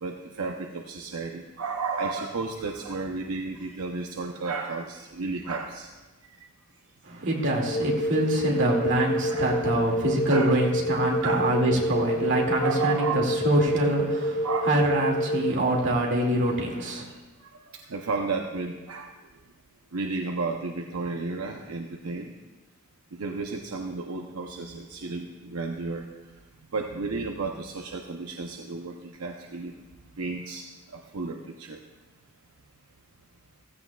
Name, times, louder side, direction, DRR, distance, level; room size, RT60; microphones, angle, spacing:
voice 1, 0.0-5.9 9.3-9.5 10.3-10.5 11.2-11.5 12.6-13.4 14.4-14.7 17.0-17.1 17.4-17.5 17.9-19.1 19.9-22.3 23.1-26.1 26.7-29.7 30.2-30.6 30.9-31.8, right 4 dB, 80° right, 2 dB, 0.8 m, -32 dB
voice 2, 7.0-17.1, right 1 dB, 55° right, -1 dB, 2.3 m, -25 dB
sound 1, 7.7-15.5, equal, 40° left, 1.0 m, -28 dB
15.5 x 15.0 x 2.4 m, 1.2 s
head